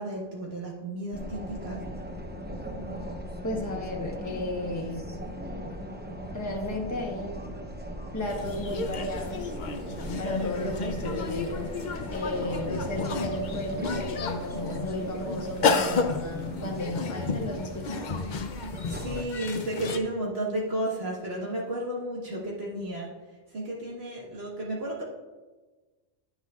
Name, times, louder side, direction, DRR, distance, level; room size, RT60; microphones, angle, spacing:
voice 1, 0.0-1.8 18.6-23.1 23.5-25.0, right 1 dB, 60° right, -4 dB, 1.6 m, -33 dB
sound 1, 1.1-19.2, equal, 10° right, 0.6 m, -39 dB
voice 2, 3.4-5.0 6.3-7.4 8.1-9.5 10.2-11.7 12.1-18.2, left 1 dB, 15° left, 0 dB, 1.2 m, -34 dB
sound 2, 8.3-20.0, left 4 dB, 50° left, 0.7 m, -32 dB
sound 3, 10.1-16.0, right 1 dB, 35° right, 2.1 m, -43 dB
10.0 x 9.6 x 2.4 m, 1.3 s
omnidirectional pair, 1.2 m